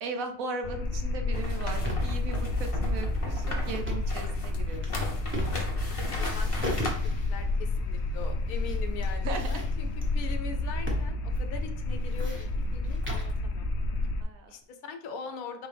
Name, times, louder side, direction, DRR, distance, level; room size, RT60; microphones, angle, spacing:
voice 1, 0.0-4.9 9.2-9.5 14.2-14.5, right 3 dB, 75° right, 5 dB, 1.2 m, -37 dB
sound 1, 0.6-14.2, left 2 dB, 65° left, 0.8 m, -30 dB
sound 2, 1.3-6.9, left 2 dB, 30° left, 0.7 m, -37 dB
sound 3, 1.8-2.3 3.7-4.2 4.7-5.9 6.2-7.5 8.2-8.8 9.0-10.1 10.9-11.1 11.3-11.4 11.9-13.4, equal, 10° right, 0.9 m, -36 dB
voice 2, 6.2-6.9 7.3-13.7 14.5-15.7, left 5 dB, 90° left, 6 dB, 1.2 m, -41 dB
4.6 x 3.4 x 3.3 m, 0.63 s
omnidirectional pair, 1.5 m